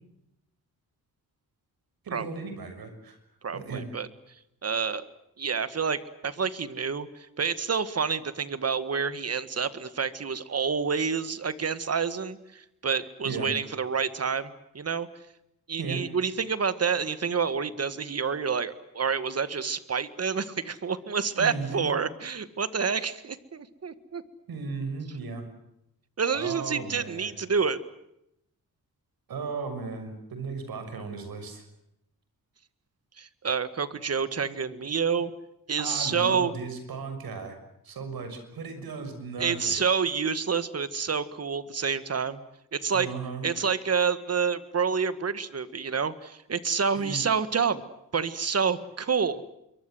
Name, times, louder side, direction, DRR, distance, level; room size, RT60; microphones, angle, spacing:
voice 1, 2.0-3.2 3.5-3.9 13.2-13.5 15.8-16.0 21.4-21.9 24.5-25.4 26.3-27.3 29.3-31.6 35.8-37.6 37.8-39.8 42.9-43.4 46.9-47.3, right 4 dB, 80° right, 8 dB, 6.4 m, -36 dB
voice 2, 3.4-4.1 4.6-5.0 5.4-15.1 15.7-24.2 26.2-27.8 33.2-35.3 35.7-36.5 39.4-42.4 42.7-43.1 43.4-47.8 48.1-49.4, right 6 dB, 45° right, 13 dB, 1.8 m, -28 dB
27.5 x 23.0 x 7.9 m, 0.81 s
wide cardioid pair, 110°, 35 cm